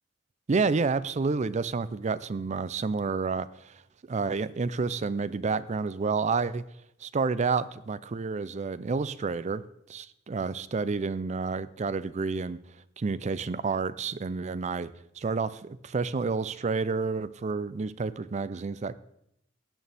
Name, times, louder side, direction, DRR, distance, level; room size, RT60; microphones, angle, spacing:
voice 1, 0.5-3.8 4.1-6.6 7.0-9.6 9.9-12.6 13.0-14.9 15.2-18.9, right 4 dB, 35° right, 16 dB, 0.4 m, -29 dB
16.0 x 9.0 x 3.4 m, 0.78 s
head